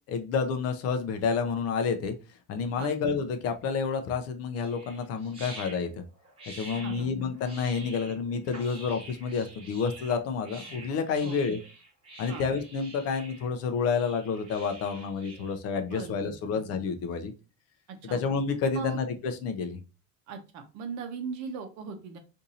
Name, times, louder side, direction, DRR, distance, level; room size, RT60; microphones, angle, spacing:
voice 1, 0.1-2.1 2.5-6.0 6.5-11.6 12.2-17.3 18.0-19.8, left 5 dB, 45° left, 7 dB, 0.5 m, -29 dB
sound 1, 4.5-15.5, right 2 dB, 15° right, 0.9 m, -47 dB
voice 2, 6.7-7.1 8.0-8.1 11.2-11.4 12.3-12.4 15.8-16.6 17.9-18.2 18.7-19.1 20.3-22.2, right 5 dB, 55° right, 5 dB, 0.8 m, -39 dB
2.6 x 2.6 x 4.0 m, 0.31 s
cardioid pair, 170°, 34 cm